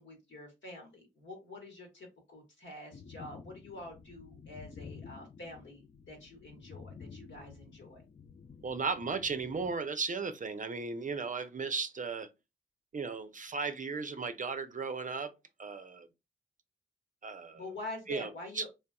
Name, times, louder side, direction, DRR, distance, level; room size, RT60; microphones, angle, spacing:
voice 1, 0.0-8.0 17.5-18.7, left 2 dB, 65° left, 1.5 m, -47 dB
sound 1, 2.9-9.8, left 5 dB, 30° left, 0.4 m, -51 dB
voice 2, 8.6-12.3 12.9-15.3 15.6-16.1 17.2-17.6 18.1-18.3 18.6-18.7, right 4 dB, 40° right, 0.6 m, -35 dB
3.2 x 2.8 x 2.3 m
supercardioid pair, 40°, 21 cm